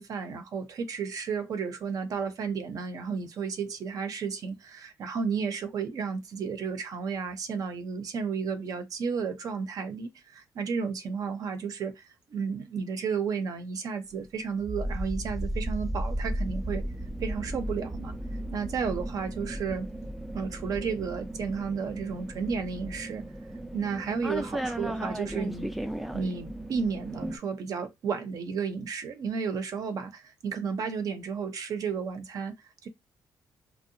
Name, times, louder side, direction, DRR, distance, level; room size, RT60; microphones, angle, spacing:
voice 1, 0.0-16.9 17.2-18.1 18.5-19.9 20.3-23.2 23.7-25.7 26.1-32.9, right 6 dB, 55° right, 0.5 m, -33 dB
sound 1, 14.6-27.4, right 1 dB, ahead, 0.3 m, -35 dB
2.7 x 2.0 x 2.6 m
cardioid pair, 110°, 7 cm